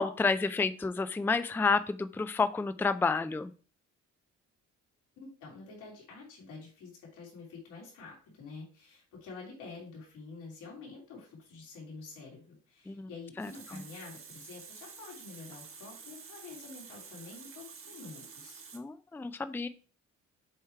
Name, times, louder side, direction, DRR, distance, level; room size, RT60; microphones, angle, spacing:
voice 1, 0.0-3.5 12.9-13.1 13.4-13.5 18.7-19.7, left 4 dB, 5° left, 12 dB, 0.4 m, -30 dB
voice 2, 5.2-18.6, left 4 dB, 90° left, -2 dB, 3.2 m, -48 dB
Water tap faucet, 13.1-18.8, right 6 dB, 45° right, 1.4 m, -49 dB
7.3 x 3.2 x 4.4 m, 0.38 s
cardioid pair, 90°, 30 cm